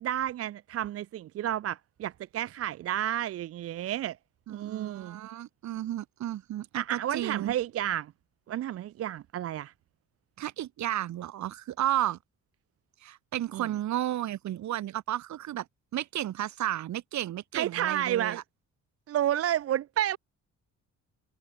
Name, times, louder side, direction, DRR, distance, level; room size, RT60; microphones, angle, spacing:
voice 1, 0.0-4.2 4.5-5.2 6.8-8.1 8.5-9.7 13.5-13.7 17.5-18.4 19.1-20.2, right 11 dB, 50° right, 0.5 m, -31 dB
voice 2, 4.5-7.5 10.4-12.2 13.0-15.6 15.9-18.4, right 12 dB, 70° right, 1.3 m, -33 dB
cardioid pair, 90°, 30 cm